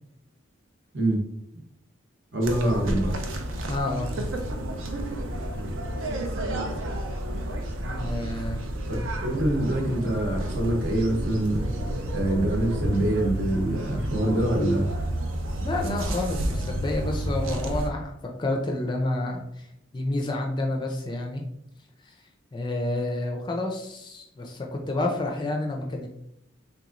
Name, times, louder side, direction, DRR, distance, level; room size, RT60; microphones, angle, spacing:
voice 1, 2.3-3.2 8.9-11.6 12.1-14.9, right 1 dB, 60° right, 0 dB, 0.8 m, -25 dB
sound 1, 2.4-17.9, right 1 dB, 80° right, 0.5 m, -30 dB
voice 2, 3.7-4.1 7.8-8.6 15.6-18.1 18.4-19.7 19.9-21.4 22.0-22.1 22.5-26.1, left 2 dB, 20° left, 2 dB, 0.4 m, -29 dB
3.5 x 2.9 x 2.5 m, 0.78 s
head